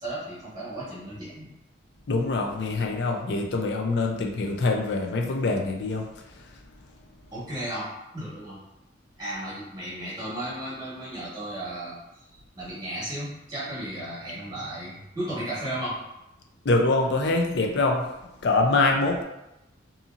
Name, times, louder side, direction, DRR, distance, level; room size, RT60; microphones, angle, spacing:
voice 1, 0.0-1.5 7.3-8.6 9.2-12.3 12.6-16.0, right 1 dB, 20° right, -9 dB, 1.2 m, -34 dB
voice 2, 2.1-6.1 16.7-18.0 18.4-19.2, left 3 dB, 60° left, 2 dB, 0.4 m, -24 dB
2.7 x 2.7 x 2.4 m, 0.92 s
head